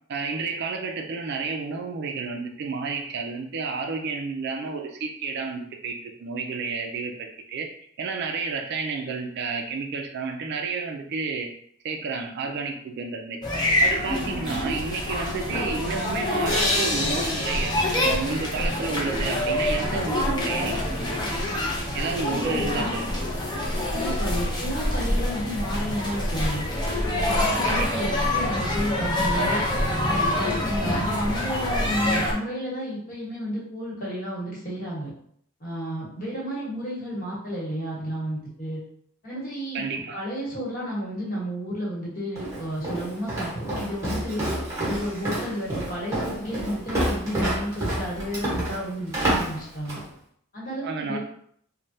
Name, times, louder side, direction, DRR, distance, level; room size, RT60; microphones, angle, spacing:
voice 1, 0.1-7.7 8.0-11.5 11.8-13.4 13.8-17.7 18.0-21.3 21.9-23.2 27.6-27.9 39.7-40.2 50.8-51.2, right 4 dB, 50° right, 3 dB, 0.3 m, -31 dB
sound 1, 13.4-32.3, left 1 dB, 20° left, 0.5 m, -26 dB
sound 2, 16.5-20.0, left 2 dB, 60° left, 0.9 m, -30 dB
voice 2, 23.9-26.6 27.1-29.6 30.0-35.1 35.6-38.8 39.2-39.8 40.1-44.4 44.8-50.0 50.5-51.2, equal, 40° left, -6 dB, 1.2 m, -32 dB
Walk footsteps, 42.4-50.1, right 1 dB, 15° right, 1.0 m, -29 dB
3.2 x 2.1 x 2.7 m, 0.66 s
head